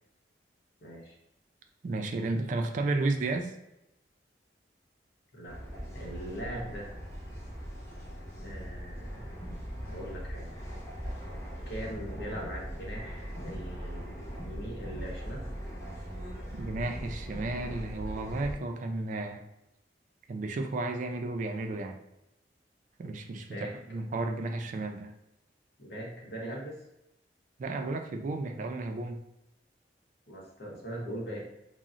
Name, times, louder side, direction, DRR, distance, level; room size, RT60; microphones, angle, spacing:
voice 1, 0.8-1.1 5.3-5.6 5.9-7.0 8.4-9.3 9.8-10.6 11.7-15.4 23.5-23.7 25.8-26.8 30.3-31.5, right 1 dB, 60° left, -3 dB, 0.9 m, -41 dB
voice 2, 1.8-3.5 16.5-19.4 20.3-22.0 23.0-25.1 27.6-29.2, right 2 dB, 45° right, 5 dB, 0.3 m, -33 dB
sound 1, 5.5-18.5, equal, 15° left, 1.0 m, -40 dB
3.8 x 2.0 x 2.4 m, 0.87 s
head